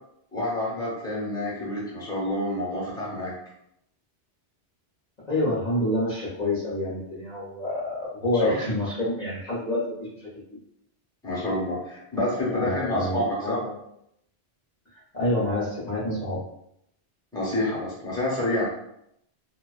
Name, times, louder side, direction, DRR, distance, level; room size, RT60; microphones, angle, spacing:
voice 1, 0.3-3.3 8.4-8.7 11.2-13.6 17.3-18.8, left 1 dB, 5° left, -6 dB, 0.7 m, -28 dB
voice 2, 5.3-10.6 12.5-13.8 14.9-16.4, left 1 dB, 45° left, -9 dB, 0.7 m, -28 dB
2.4 x 2.3 x 2.3 m, 0.76 s
omnidirectional pair, 1.1 m